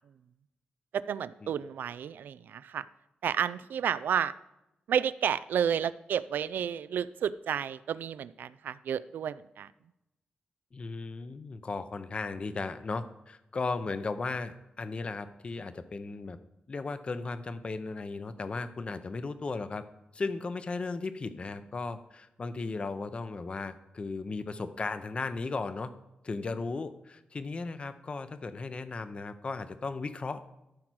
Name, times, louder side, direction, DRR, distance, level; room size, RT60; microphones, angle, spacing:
voice 1, 0.9-2.9 3.2-4.3 4.9-9.7, right 8 dB, 90° right, 17 dB, 0.4 m, -31 dB
voice 2, 10.7-16.4 16.7-19.8 20.1-25.9 26.2-30.4, left 3 dB, 35° left, 11 dB, 0.7 m, -36 dB
13.5 x 4.7 x 6.2 m, 0.90 s
wide cardioid pair, 130°, 3 cm